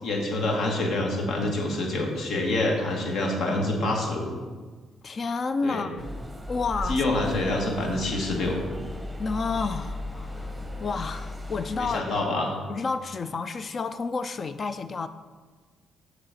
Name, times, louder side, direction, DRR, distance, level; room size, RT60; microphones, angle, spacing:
voice 1, 0.0-4.3 5.6-5.9 6.9-8.6 11.8-12.6, left 2 dB, 70° left, 0 dB, 1.5 m, -26 dB
voice 2, 5.0-6.0 6.5-7.0 9.2-12.1 12.7-15.1, left 4 dB, 40° left, 11 dB, 0.3 m, -30 dB
sound 1, 6.0-12.0, left 1 dB, 10° right, 0.8 m, -36 dB
6.6 x 4.0 x 5.8 m, 1.4 s
cardioid pair, 90°, 0 cm